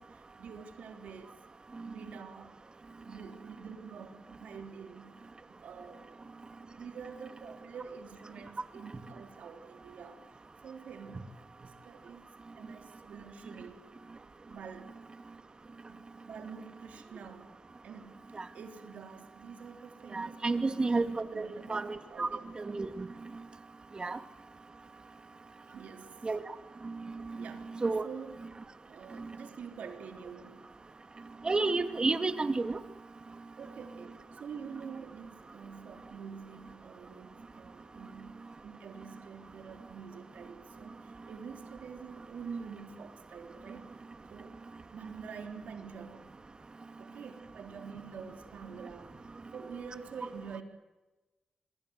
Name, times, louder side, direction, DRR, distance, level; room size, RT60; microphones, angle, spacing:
voice 1, 0.0-1.4 1.8-2.5 3.0-5.2 5.6-6.1 6.6-12.2 12.6-13.9 14.5-15.0 15.9-17.5 17.8-22.4 25.7-26.7 27.4-27.7 28.0-28.4 28.9-31.1 33.6-44.0 44.3-44.6 44.9-46.3 47.0-50.6, right 6 dB, 85° right, 5 dB, 3.8 m, -47 dB
voice 2, 20.1-22.3 22.6-23.1 24.0-24.2 26.2-26.4 26.8-27.0 27.8-28.0 31.4-32.8, right 3 dB, 40° right, 9 dB, 2.6 m, -31 dB
26.5 x 23.0 x 8.2 m, 1.1 s
cardioid pair, 60°, 2 cm